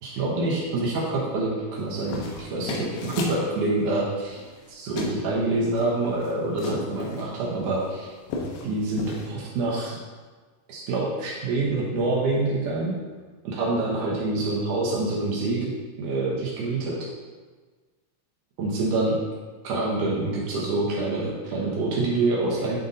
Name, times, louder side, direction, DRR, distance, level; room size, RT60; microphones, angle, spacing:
voice 1, 0.0-4.4 4.7-8.1 8.6-9.9 10.7-12.9 13.4-15.7 16.0-17.0 18.6-19.2 19.6-22.8, right 2 dB, 85° right, -4 dB, 1.8 m, -26 dB
sound 1, 1.8-3.4 4.3-4.7 5.0-5.2 5.6-7.3 7.8-7.9 8.2-8.7 9.0-9.3, left 3 dB, 80° left, 3.1 m, -34 dB
10.5 x 4.0 x 3.8 m, 1.4 s
omnidirectional pair, 5.0 m